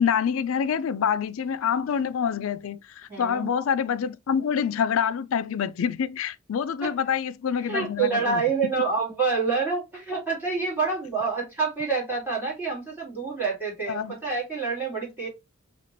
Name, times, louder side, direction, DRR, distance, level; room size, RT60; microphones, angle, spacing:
voice 1, 0.0-8.4 13.9-14.1, left 7 dB, 65° left, 0.4 m, -26 dB
voice 2, 3.1-3.5 6.8-6.9 7.6-15.3, right 4 dB, 10° right, 2.5 m, -27 dB
4.2 x 2.9 x 3.0 m
head